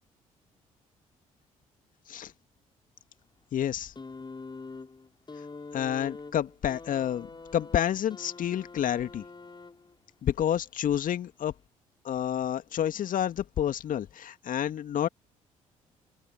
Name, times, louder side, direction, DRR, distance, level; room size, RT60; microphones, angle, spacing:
voice 1, 3.5-3.9 5.7-7.3 7.5-9.2 10.2-11.5 12.0-15.1, left 10 dB, 50° left, 2.2 m, -29 dB
sound 1, 3.9-10.1 11.2-11.3, left 4 dB, 25° left, 6.3 m, -45 dB
open air
figure-of-eight pair, 45°, 18 cm